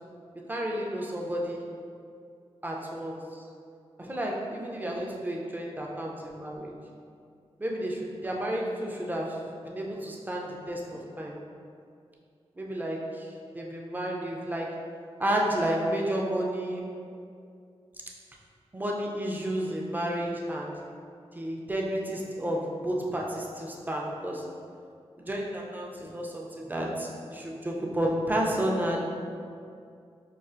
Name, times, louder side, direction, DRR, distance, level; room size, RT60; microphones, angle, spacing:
voice 1, 0.3-1.7 2.6-3.4 4.0-6.7 7.6-11.3 12.6-14.8 15.2-16.9 18.7-20.8 21.3-24.5 25.3-29.1, right 1 dB, 15° right, -2 dB, 0.4 m, -31 dB
5.4 x 2.4 x 2.4 m, 2.4 s
wide cardioid pair, 135°, 11 cm